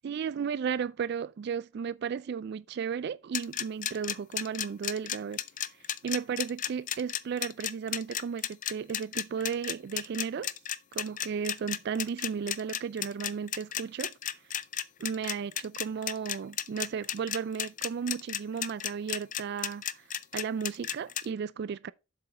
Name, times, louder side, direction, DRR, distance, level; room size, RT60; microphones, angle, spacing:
voice 1, 0.0-5.4 6.0-10.5 10.9-14.1 15.0-20.0 20.3-21.9, right 6 dB, 50° right, 0.3 m, -34 dB
sound 1, 3.3-21.2, left 11 dB, 35° left, 0.4 m, -33 dB
7.6 x 6.2 x 4.2 m
head